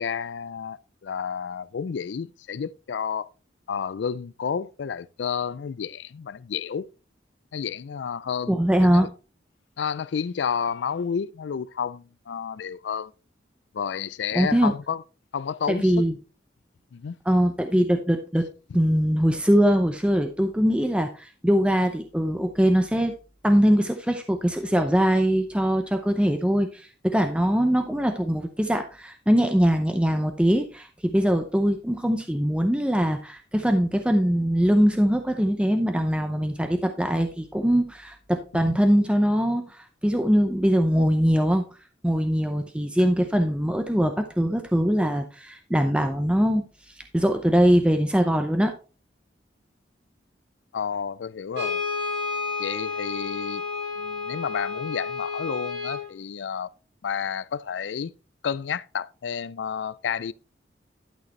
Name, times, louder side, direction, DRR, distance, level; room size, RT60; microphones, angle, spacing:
voice 1, 0.0-3.3 3.7-6.9 7.5-9.1 9.8-13.1 13.7-15.0 15.3-16.1 16.9-17.1 38.6-38.7 50.7-51.8 52.6-53.6 54.0-56.7 57.0-58.1 58.4-60.3, left 7 dB, 80° left, 0.4 m, -31 dB
voice 2, 8.5-9.1 14.3-14.7 15.7-16.2 17.3-18.5 18.7-23.1 23.4-41.6 42.0-46.6 47.1-48.7, equal, 5° right, 0.7 m, -22 dB
Brass instrument, 51.5-56.1, left 4 dB, 80° right, 3.8 m, -31 dB
11.5 x 6.5 x 3.2 m
head